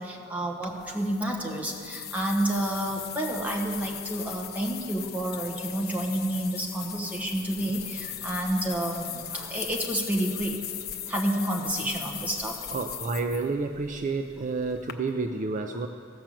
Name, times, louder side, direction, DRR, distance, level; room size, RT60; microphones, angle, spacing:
voice 1, 0.0-10.6 11.1-12.7, right 1 dB, 10° right, -1 dB, 1.3 m, -30 dB
sound 1, 0.6-14.9, left 10 dB, 50° left, 0.7 m, -39 dB
voice 2, 12.7-15.9, right 3 dB, 40° right, 6 dB, 0.4 m, -30 dB
15.0 x 5.8 x 7.6 m, 2.3 s
head